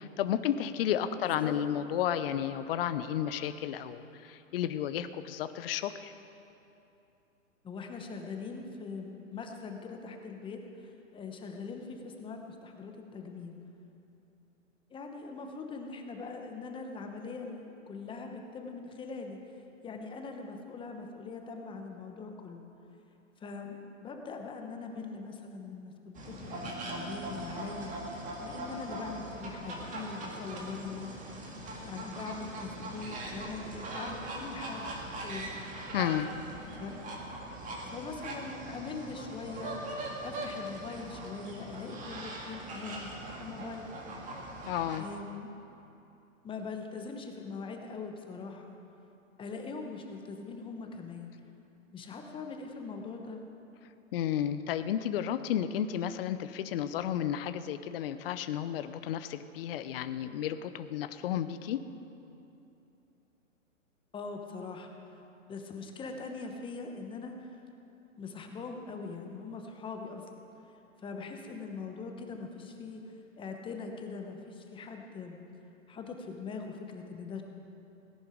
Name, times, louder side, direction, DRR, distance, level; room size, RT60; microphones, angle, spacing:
voice 1, 0.0-6.1 35.9-36.3 44.7-45.0 54.1-61.8, left 10 dB, 45° left, 11 dB, 0.7 m, -32 dB
voice 2, 7.6-13.6 14.9-19.4 19.8-22.6 23.4-27.9 28.4-31.4 31.8-35.5 36.8-37.0 37.9-40.0 40.2-43.9 45.0-45.5 46.4-48.8 49.4-51.3 51.9-53.4 64.1-64.9 65.5-67.6 68.2-70.2 71.0-75.4 75.9-77.4, left 4 dB, 10° left, 4 dB, 1.1 m, -42 dB
sound 1, 26.1-45.0, right 1 dB, 20° right, 2.0 m, -41 dB
17.5 x 10.5 x 5.1 m, 2.8 s
hypercardioid pair, 130°, 40 cm